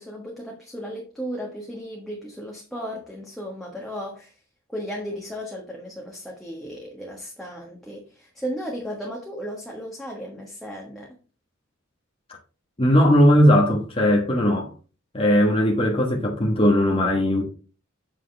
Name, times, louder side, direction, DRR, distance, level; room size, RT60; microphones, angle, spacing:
voice 1, 0.0-4.4 4.7-11.2, equal, ahead, 1.5 m, -35 dB
voice 2, 12.8-14.7 15.1-17.4, equal, 30° left, 1.3 m, -18 dB
8.2 x 6.1 x 3.4 m
head